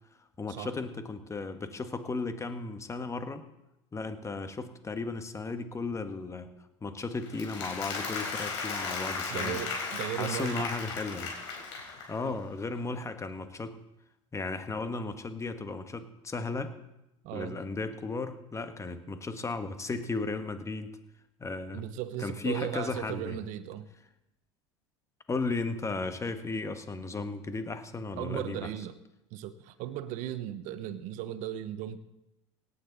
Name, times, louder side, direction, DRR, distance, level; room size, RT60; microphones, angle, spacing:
voice 1, 0.4-3.4 3.9-6.5 6.8-9.6 10.1-11.3 12.1-13.8 14.3-16.7 17.3-20.9 21.4-21.8 22.2-23.4 25.3-28.7, left 3 dB, 20° left, 8 dB, 1.5 m, -35 dB
Applause, 7.2-12.3, left 4 dB, 75° left, 4.8 m, -36 dB
voice 2, 9.3-10.7 12.2-12.4 17.2-17.6 21.7-23.9 28.1-29.0 29.3-32.0, right 12 dB, 60° right, 12 dB, 1.0 m, -36 dB
17.5 x 9.8 x 4.1 m, 0.91 s
hypercardioid pair, 85°, 15 cm